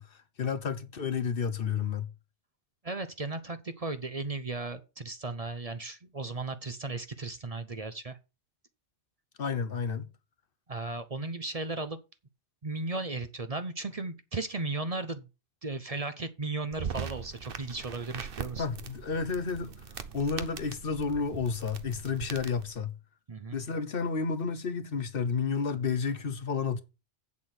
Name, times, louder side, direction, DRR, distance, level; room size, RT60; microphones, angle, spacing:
voice 1, 0.0-2.1 9.4-10.1 18.6-19.9 20.1-23.0 23.5-26.8, left 5 dB, 60° left, 1.1 m, -31 dB
voice 2, 2.8-8.2 10.7-12.0 12.6-15.3 15.6-18.6 23.3-23.6, right 3 dB, 35° right, 0.8 m, -36 dB
sound 1, 16.7-22.7, right 7 dB, 60° right, 1.1 m, -41 dB
8.4 x 7.3 x 5.8 m
omnidirectional pair, 1.1 m